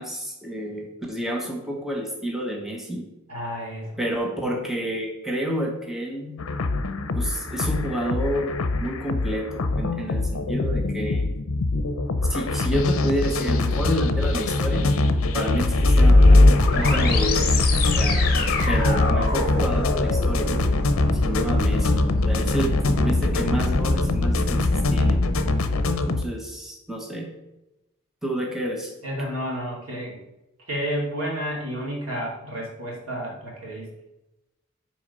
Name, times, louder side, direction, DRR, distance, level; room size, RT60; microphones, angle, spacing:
voice 1, 0.0-3.1 4.0-6.4 7.1-8.5 8.8-11.3 12.3-14.9 15.3-17.6 18.0-20.6 21.2-24.6 24.9-25.2 26.0-27.3 28.2-28.9, equal, ahead, 0 dB, 0.9 m, -29 dB
voice 2, 3.3-3.9 16.9-17.3 22.6-22.7 29.0-30.2 30.7-33.9, equal, 85° right, -3 dB, 2.5 m, -31 dB
sound 1, 6.4-26.2, left 2 dB, 75° left, 0.6 m, -24 dB
sound 2, 15.5-25.5, left 2 dB, 45° left, 0.9 m, -21 dB
6.3 x 4.3 x 5.3 m, 0.96 s
head